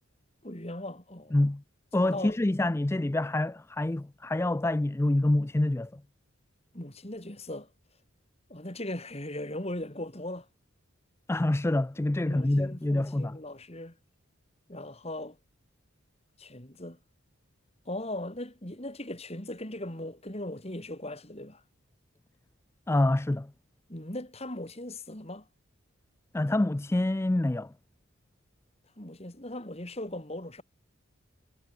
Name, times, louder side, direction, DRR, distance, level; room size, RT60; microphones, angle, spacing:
voice 1, 0.4-1.4 2.0-2.4 6.7-7.7 8.5-10.5 12.2-14.0 14.7-15.4 16.4-17.0 17.8-21.6 23.9-25.5 29.0-30.6, left 1 dB, 30° left, 3.3 m, -38 dB
voice 2, 1.3-1.6 1.9-6.0 11.3-13.4 22.9-23.5 26.3-27.7, left 1 dB, 10° left, 0.3 m, -26 dB
head